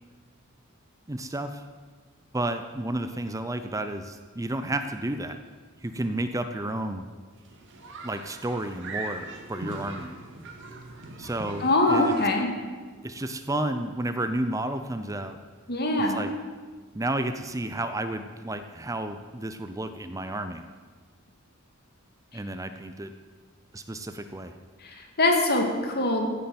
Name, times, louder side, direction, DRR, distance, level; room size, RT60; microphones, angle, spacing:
voice 1, 1.1-1.6 2.3-5.4 5.8-7.1 8.0-10.1 11.2-12.1 13.0-15.4 16.1-16.3 16.9-20.6 22.3-23.1 23.7-24.5, right 1 dB, 15° right, 9 dB, 0.6 m, -31 dB
sound 1, 7.3-12.3, right 2 dB, 60° right, 2.2 m, -39 dB
voice 2, 11.6-12.5 15.7-16.2 24.8-26.3, left 2 dB, 50° left, 3 dB, 2.3 m, -23 dB
15.0 x 8.4 x 7.8 m, 1.5 s
head